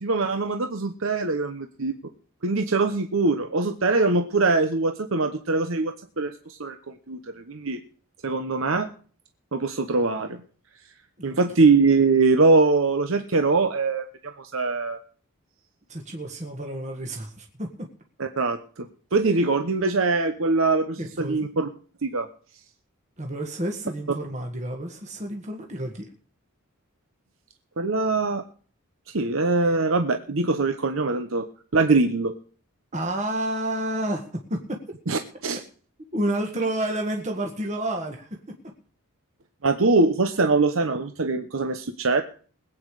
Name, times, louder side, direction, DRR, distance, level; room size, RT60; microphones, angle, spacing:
voice 1, 0.0-1.9 2.4-7.8 8.2-8.9 9.5-10.4 11.2-15.0 18.2-21.7 22.0-22.3 27.8-28.4 29.1-31.5 31.7-32.3 35.1-35.6 39.6-42.2, right 3 dB, 65° right, 7 dB, 1.0 m, -23 dB
voice 2, 15.9-17.9 21.0-21.5 23.2-26.1 32.9-34.8 36.1-38.4, right 1 dB, 35° right, 2 dB, 1.7 m, -30 dB
21.0 x 8.7 x 4.9 m, 0.44 s
head